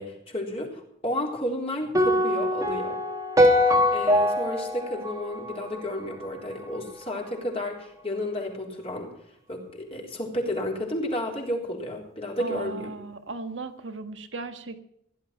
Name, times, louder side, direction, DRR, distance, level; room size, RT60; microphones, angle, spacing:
voice 1, 0.0-3.0 3.7-9.1 9.5-12.9, left 1 dB, 30° left, 0 dB, 3.7 m, -32 dB
sound 1, 1.9-6.2, left 1 dB, 15° right, 1.8 m, -23 dB
voice 2, 12.4-14.8, right 3 dB, 80° right, 8 dB, 1.6 m, -36 dB
16.0 x 11.0 x 5.8 m, 0.73 s
head